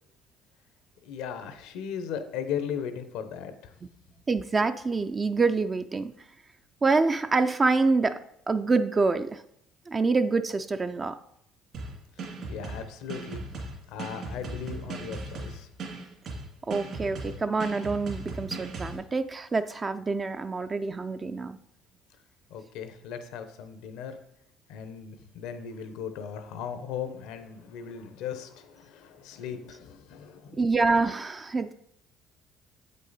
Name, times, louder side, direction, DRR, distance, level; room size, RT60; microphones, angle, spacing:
voice 1, 1.0-3.7 12.2-13.6 13.9-15.7 22.5-24.2 24.7-30.6, left 8 dB, 80° left, 9 dB, 0.8 m, -37 dB
voice 2, 4.3-6.1 6.8-8.2 8.5-9.4 9.9-11.2 16.7-21.6 30.6-31.7, right 3 dB, 25° right, 9 dB, 0.3 m, -26 dB
sound 1, 11.7-19.0, right 2 dB, 60° right, 2.2 m, -38 dB
7.9 x 5.5 x 4.1 m, 0.76 s
supercardioid pair, 95°, 0 cm